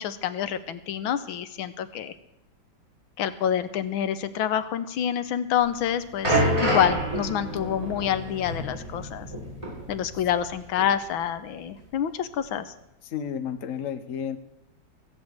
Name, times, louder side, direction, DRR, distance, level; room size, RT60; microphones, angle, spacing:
voice 1, 0.0-2.1 3.2-9.3 9.9-12.7, left 9 dB, 90° left, 12 dB, 1.6 m, -27 dB
sound 1, 5.6-10.5 10.8-11.0 11.7-11.8, equal, 15° right, 6.6 m, -28 dB
voice 2, 13.0-14.4, left 8 dB, 50° left, 9 dB, 1.2 m, -32 dB
15.5 x 8.4 x 8.1 m, 0.88 s
omnidirectional pair, 2.2 m